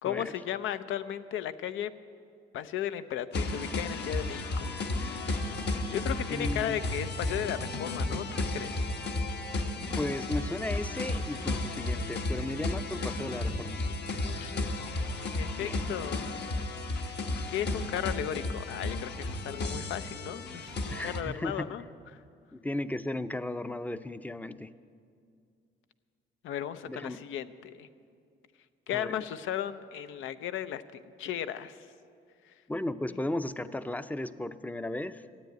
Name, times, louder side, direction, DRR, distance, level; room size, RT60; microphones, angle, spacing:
voice 1, 0.0-1.9 2.5-4.7 5.9-8.8 14.4-14.5 15.2-16.3 17.5-21.8 26.4-27.9 28.9-31.8, left 10 dB, 80° left, 13 dB, 0.6 m, -35 dB
sound 1, 3.3-21.2, left 2 dB, 60° left, 1.2 m, -33 dB
voice 2, 6.3-6.8 10.0-13.8 15.6-15.9 20.9-21.8 22.5-24.7 26.8-27.2 28.9-29.2 32.7-35.3, left 1 dB, 10° left, 13 dB, 0.5 m, -35 dB
13.5 x 9.2 x 9.2 m, 2.3 s
cardioid pair, 90°, 20 cm